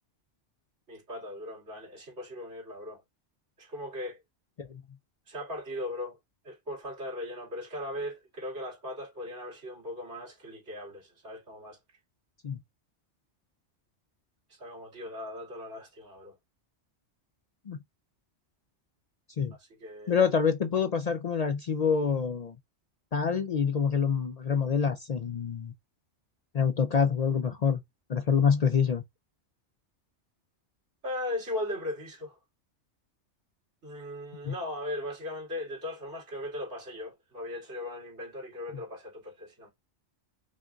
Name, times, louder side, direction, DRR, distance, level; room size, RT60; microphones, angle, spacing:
voice 1, 0.9-3.0 3.6-4.2 5.3-6.2 6.4-11.8 14.5-16.4 19.5-20.3 31.0-32.4 33.8-39.7, left 1 dB, 75° right, 2.7 m, -38 dB
voice 2, 20.1-22.5 23.1-25.7 26.5-27.8 28.1-29.0 34.4-34.5, left 6 dB, 55° left, 0.4 m, -26 dB
5.5 x 2.5 x 2.3 m
omnidirectional pair, 1.2 m